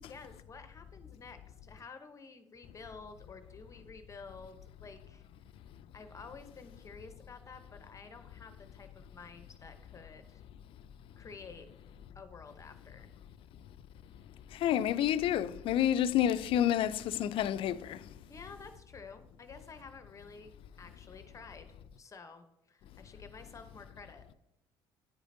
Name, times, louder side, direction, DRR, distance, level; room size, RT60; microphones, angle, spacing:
voice 1, 0.1-5.2 5.9-10.4 11.2-11.7 12.1-13.1 18.3-21.7 22.0-24.3, left 4 dB, 30° left, 0.7 m, -51 dB
voice 2, 14.6-18.0, left 11 dB, 55° left, 0.4 m, -29 dB
10.0 x 5.0 x 2.6 m
supercardioid pair, 85°, 11 cm